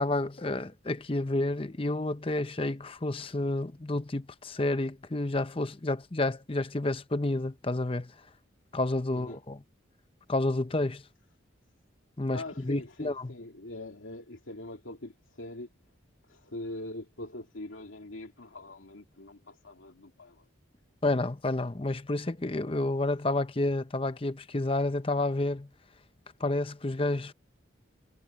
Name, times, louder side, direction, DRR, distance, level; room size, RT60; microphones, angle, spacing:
voice 1, 0.0-8.1 8.7-9.6 10.3-11.0 12.2-13.3 21.0-25.7 26.4-27.3, left 2 dB, 30° left, 0.7 m, -30 dB
voice 2, 12.3-15.7 16.3-20.4, left 2 dB, 85° left, 2.4 m, -42 dB
head